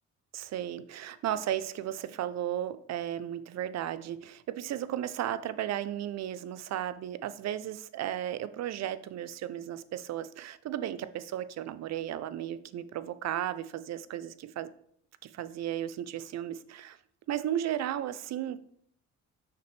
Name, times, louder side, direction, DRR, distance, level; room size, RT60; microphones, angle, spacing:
voice 1, 0.3-14.7 15.2-17.0 17.3-18.6, right 11 dB, 60° right, 15 dB, 0.5 m, -35 dB
5.9 x 5.7 x 3.3 m, 0.66 s
cardioid pair, 90°, 30 cm